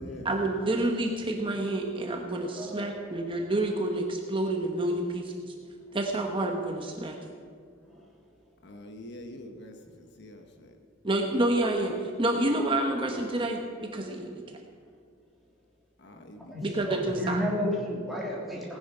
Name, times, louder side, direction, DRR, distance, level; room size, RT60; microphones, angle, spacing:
voice 1, 0.2-5.5 5.9-7.2 11.0-14.6 16.6-17.4, right 1 dB, 25° right, 2 dB, 1.1 m, -29 dB
voice 2, 2.4-3.3 7.8-8.1 16.4-18.8, equal, ahead, -5 dB, 3.4 m, -33 dB
voice 3, 8.6-10.8 16.0-16.9 17.1-17.3, left 1 dB, 60° left, 5 dB, 1.3 m, -45 dB
18.5 x 9.9 x 5.7 m, 2.2 s
head